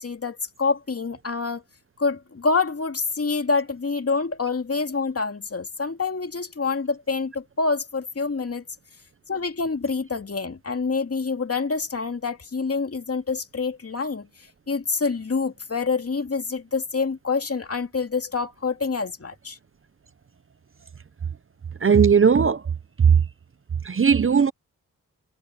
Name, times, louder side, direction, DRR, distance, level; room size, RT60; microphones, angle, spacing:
voice 1, 0.0-1.6 2.0-8.6 9.3-14.3 14.7-19.6, left 4 dB, 40° left, 2.5 m, -26 dB
voice 2, 21.8-22.6 23.0-23.1 23.8-24.5, right 6 dB, 35° right, 0.8 m, -17 dB
cardioid pair, 50°, 37 cm